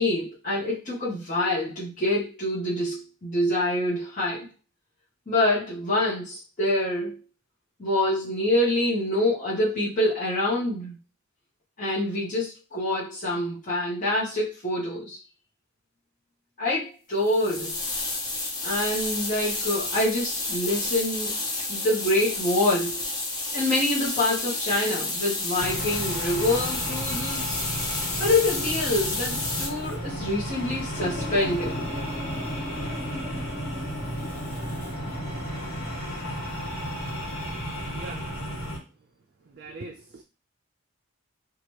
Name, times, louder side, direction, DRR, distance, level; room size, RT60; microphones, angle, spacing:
voice 1, 0.0-4.5 5.3-7.2 7.8-11.0 11.8-15.2 16.6-17.8 18.6-21.4 21.7-23.0 23.5-27.6 28.2-31.8, left 1 dB, 35° left, -8 dB, 1.0 m, -26 dB
sound 1, 17.2-29.7, left 2 dB, 20° left, 0.5 m, -30 dB
sound 2, 25.6-38.8, equal, 70° left, 1.2 m, -33 dB
sound 3, 30.9-36.0, left 1 dB, 25° right, 0.9 m, -38 dB
voice 2, 37.9-38.4 39.4-40.2, right 3 dB, 45° right, 2 dB, 0.4 m, -41 dB
2.8 x 2.4 x 3.1 m, 0.29 s
head